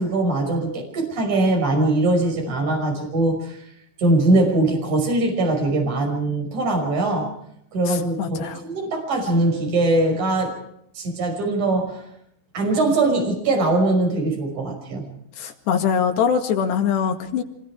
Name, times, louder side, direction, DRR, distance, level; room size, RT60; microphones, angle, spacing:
voice 1, 0.0-3.6 4.0-7.3 7.7-10.6 10.9-12.0 12.5-15.1, right 2 dB, 40° right, 2 dB, 6.8 m, -21 dB
voice 2, 7.9-8.6 15.4-17.4, left 7 dB, 65° left, 4 dB, 4.0 m, -23 dB
26.5 x 22.0 x 4.9 m, 0.73 s
omnidirectional pair, 5.5 m